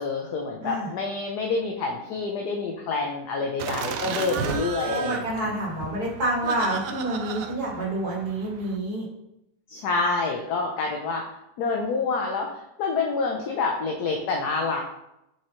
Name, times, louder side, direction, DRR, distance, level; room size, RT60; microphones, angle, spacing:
voice 1, 0.0-5.5 9.7-14.8, left 4 dB, 65° left, 1 dB, 1.1 m, -27 dB
voice 2, 0.6-0.9 4.8-9.0, right 1 dB, 50° right, -4 dB, 2.4 m, -28 dB
Laughter, 3.6-8.8, right 7 dB, 85° right, 0.7 m, -34 dB
7.4 x 4.5 x 3.0 m, 0.84 s
omnidirectional pair, 2.1 m